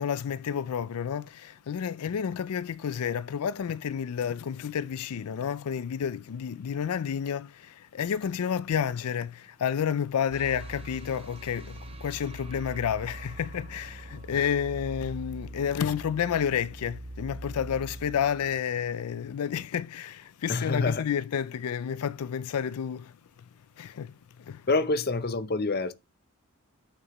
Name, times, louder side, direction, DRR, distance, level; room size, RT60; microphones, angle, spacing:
voice 1, 0.0-23.2 23.8-24.7, left 8 dB, 90° left, 0.4 m, -30 dB
sound 1, 10.3-19.4, right 1 dB, 25° right, 0.8 m, -42 dB
voice 2, 20.5-21.0 24.7-25.9, left 3 dB, 45° left, 0.6 m, -26 dB
9.0 x 6.5 x 3.0 m
head